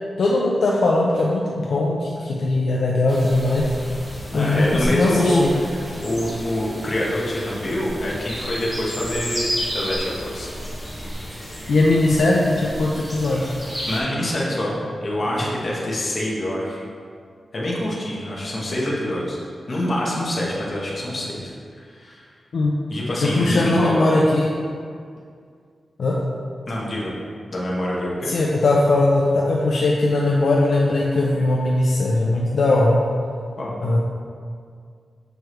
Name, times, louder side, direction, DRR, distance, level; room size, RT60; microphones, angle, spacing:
voice 1, 0.2-3.7 4.3-5.5 11.7-13.6 22.5-22.8 23.2-24.5 26.0-26.2 28.2-33.0 33.8-34.0, left 2 dB, 65° left, -3 dB, 0.5 m, -19 dB
sound 1, 3.1-14.0, equal, 5° right, 0.8 m, -32 dB
voice 2, 4.3-10.5 13.9-16.8 17.5-19.4 19.7-21.5 21.9-22.2 22.9-24.1 26.7-27.1 27.5-28.3 33.6-33.8, left 1 dB, 35° left, -5 dB, 1.1 m, -25 dB
6.5 x 4.7 x 3.1 m, 2.2 s
wide cardioid pair, 180°, 0 cm